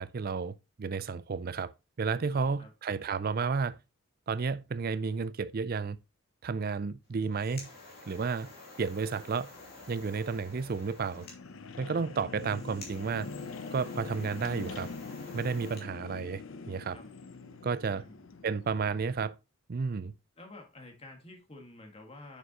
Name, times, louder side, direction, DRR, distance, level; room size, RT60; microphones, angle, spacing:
voice 1, 0.0-1.7 2.0-3.8 4.3-6.0 6.4-7.7 8.1-8.5 8.8-9.5 9.9-11.3 11.8-13.3 13.7-14.9 15.3-16.4 16.7-17.0 17.6-18.0 18.4-19.3 19.7-20.1, right 5 dB, 45° right, 0.4 m, -32 dB
voice 2, 2.2-2.7 15.5-16.0 16.9-17.1 17.9-18.3 20.4-22.4, left 2 dB, 30° left, 1.7 m, -50 dB
sound 1, 7.1-15.9, left 2 dB, 50° left, 2.7 m, -50 dB
sound 2, 9.5-19.3, left 4 dB, 70° left, 0.7 m, -44 dB
6.8 x 6.7 x 2.9 m
head